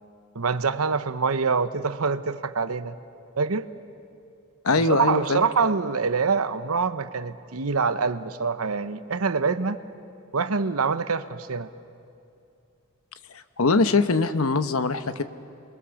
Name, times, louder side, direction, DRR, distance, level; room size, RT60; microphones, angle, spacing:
voice 1, 0.3-3.0 3.4-3.7 4.8-9.8 10.3-11.7, right 5 dB, 75° right, 12 dB, 0.9 m, -25 dB
voice 2, 4.6-5.4 13.3-15.2, left 3 dB, 70° left, 11 dB, 1.0 m, -22 dB
28.5 x 21.5 x 7.1 m, 2.6 s
head